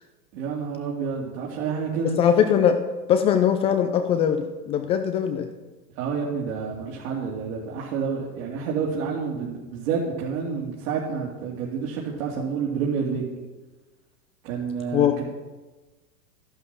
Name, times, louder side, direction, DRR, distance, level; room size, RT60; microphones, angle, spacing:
voice 1, 0.3-2.1 5.9-13.2 14.4-15.2, right 6 dB, 55° right, -4 dB, 3.1 m, -29 dB
voice 2, 2.2-2.8 3.1-5.5 14.9-15.1, left 8 dB, 15° left, 7 dB, 0.3 m, -21 dB
13.0 x 11.0 x 5.8 m, 1.2 s
hypercardioid pair, 105°, 47 cm